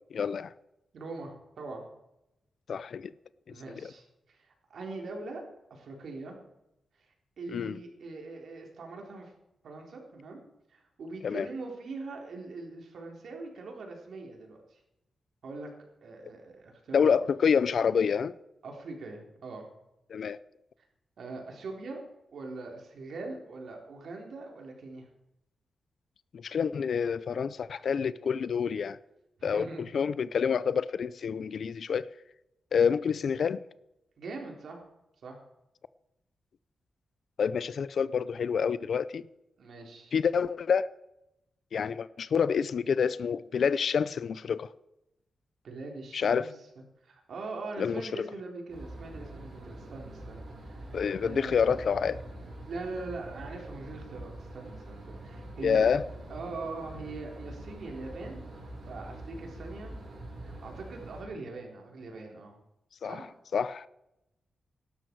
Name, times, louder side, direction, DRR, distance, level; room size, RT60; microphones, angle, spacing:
voice 1, 0.1-0.5 2.7-3.1 3.8-3.9 7.5-7.8 11.2-11.5 16.9-18.4 20.1-20.4 26.3-29.0 29.4-32.1 32.7-33.6 37.4-39.2 40.1-40.9 41.7-44.7 46.1-46.5 47.8-48.0 50.9-52.2 55.6-56.0 63.0-63.2 63.5-63.9, left 6 dB, 55° left, 0.5 m, -27 dB
voice 2, 0.9-1.8 3.5-5.4 5.7-6.3 7.4-9.3 9.6-10.4 10.7-14.8 15.4-15.7 16.0-17.1 18.6-19.7 21.2-22.0 22.3-25.1 29.4-29.8 34.2-34.8 35.2-35.4 39.6-40.2 45.6-51.9 52.7-55.9 56.3-58.5 58.9-60.0 60.4-62.6 63.0-63.3, right 3 dB, 65° right, 3.9 m, -42 dB
sound 1, 48.7-61.2, right 1 dB, 50° right, 6.1 m, -44 dB
17.0 x 12.5 x 4.7 m
wide cardioid pair, 170°, 0 cm